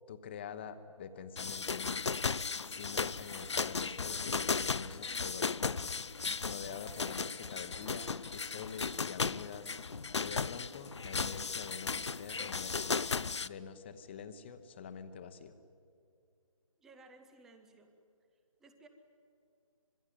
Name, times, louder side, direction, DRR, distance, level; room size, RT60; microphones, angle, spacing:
voice 1, 0.1-2.1 2.6-6.0 6.4-9.8 10.1-13.1 13.4-15.5, left 7 dB, 20° left, 11 dB, 1.0 m, -46 dB
sound 1, 1.4-13.5, left 5 dB, 55° left, 0.6 m, -36 dB
voice 2, 16.8-17.9 18.6-18.9, right 3 dB, ahead, 7 dB, 0.5 m, -58 dB
25.5 x 21.0 x 9.2 m, 2.3 s
figure-of-eight pair, 150°, 18 cm